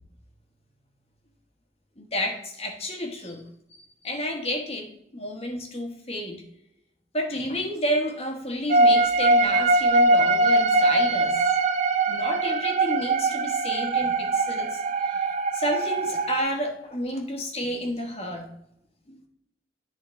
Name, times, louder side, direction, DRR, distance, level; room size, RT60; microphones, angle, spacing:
voice 1, 2.0-3.4 3.7-6.4 7.1-11.4 12.1-15.3 15.5-18.5 19.1-19.2, equal, 35° left, 3 dB, 1.3 m, -31 dB
sound 1, 8.7-16.4, right 2 dB, 40° right, 0.5 m, -22 dB
10.5 x 3.9 x 3.7 m, 0.77 s
head